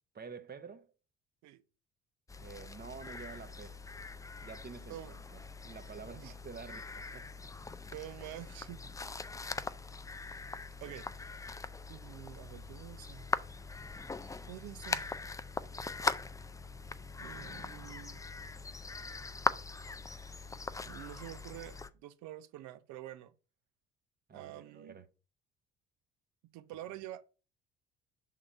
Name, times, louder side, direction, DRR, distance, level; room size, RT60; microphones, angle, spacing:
voice 1, 0.1-0.9 2.4-3.8 4.4-5.0 5.3-7.3 8.7-8.8 24.3-25.1, right 5 dB, 30° right, 1.0 m, -48 dB
sound 1, 2.3-21.9, left 3 dB, 10° left, 0.4 m, -41 dB
voice 2, 4.9-5.2 6.2-6.3 7.9-8.8 10.8-11.1 11.9-13.3 14.5-15.2 17.2-18.2 20.8-23.3 24.3-25.0 26.5-27.2, right 13 dB, 65° right, 0.7 m, -47 dB
6.1 x 3.8 x 4.3 m
hypercardioid pair, 55°, 30 cm